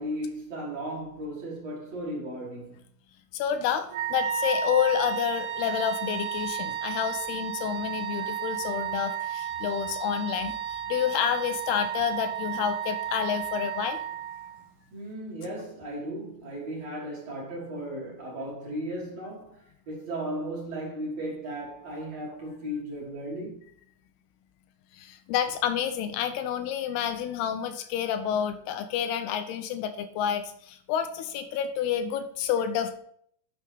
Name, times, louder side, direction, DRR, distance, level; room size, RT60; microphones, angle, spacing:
voice 1, 0.0-2.8 14.9-23.7, right 1 dB, 50° right, 2.5 m, -36 dB
voice 2, 3.3-14.0 24.9-33.0, left 9 dB, 85° left, 2.6 m, -29 dB
Wind instrument woodwind instrument, 3.9-14.7, right 8 dB, 80° right, 2.6 m, -33 dB
9.1 x 5.9 x 3.4 m
omnidirectional pair, 4.7 m